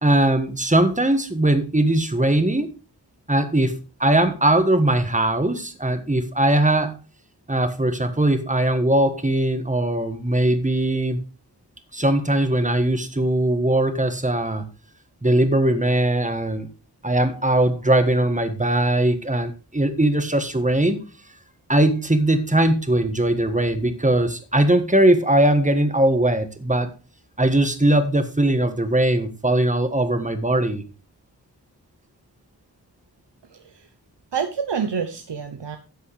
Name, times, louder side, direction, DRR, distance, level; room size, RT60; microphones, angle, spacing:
voice 1, 0.0-2.7 3.3-3.7 4.0-7.0 7.5-11.2 11.9-14.6 15.2-16.7 17.0-21.0 21.7-26.9 27.4-30.8, right 1 dB, 20° right, 8 dB, 1.5 m, -20 dB
voice 2, 33.5-33.9 34.3-35.8, right 6 dB, 90° right, 6 dB, 1.0 m, -27 dB
13.0 x 7.6 x 3.5 m, 0.33 s
wide cardioid pair, 65°, 41 cm